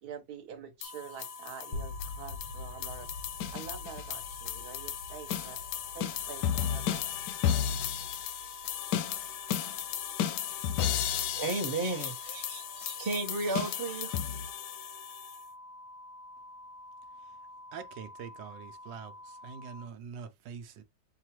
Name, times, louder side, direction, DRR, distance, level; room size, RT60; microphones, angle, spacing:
voice 1, 0.0-3.1 3.5-5.6 5.9-7.0, right 7 dB, 60° right, 1.4 m, -46 dB
sound 1, 0.8-15.4, left 9 dB, 75° left, 1.1 m, -34 dB
sound 2, 0.8-19.9, left 1 dB, 35° right, 1.2 m, -49 dB
sound 3, 1.7-11.7, left 3 dB, 50° left, 0.8 m, -46 dB
voice 2, 11.4-14.2, right 3 dB, 20° right, 0.6 m, -34 dB
voice 3, 17.7-20.8, right 6 dB, 90° right, 1.3 m, -44 dB
5.9 x 2.4 x 2.9 m
omnidirectional pair, 1.9 m